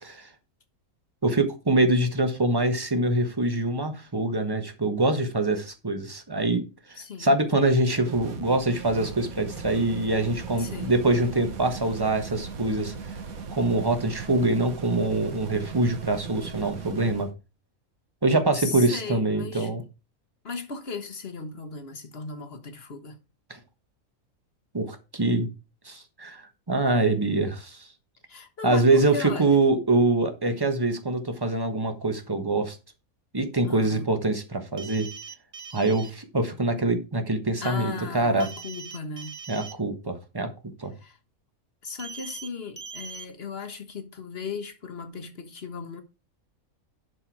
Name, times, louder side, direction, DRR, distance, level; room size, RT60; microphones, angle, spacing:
voice 1, 1.2-6.6 6.9-13.1 13.5-17.3 18.2-19.8 23.5-23.6 24.7-25.5 25.8-27.9 28.6-32.8 33.3-35.1 35.7-38.5 39.5-40.5 40.8-40.9, right 2 dB, 15° right, 1.2 m, -24 dB
voice 2, 7.0-7.3 10.6-10.9 18.5-19.7 20.4-23.2 28.3-29.6 33.6-34.1 37.6-39.4 40.9-41.2 41.8-46.0, left 4 dB, 45° left, 1.5 m, -36 dB
sound 1, 8.0-17.3, right 5 dB, 75° right, 1.7 m, -38 dB
sound 2, 34.8-36.1 38.4-39.7 42.0-42.5 42.8-43.3, right 5 dB, 40° right, 0.6 m, -41 dB
11.0 x 4.6 x 4.7 m
omnidirectional pair, 1.5 m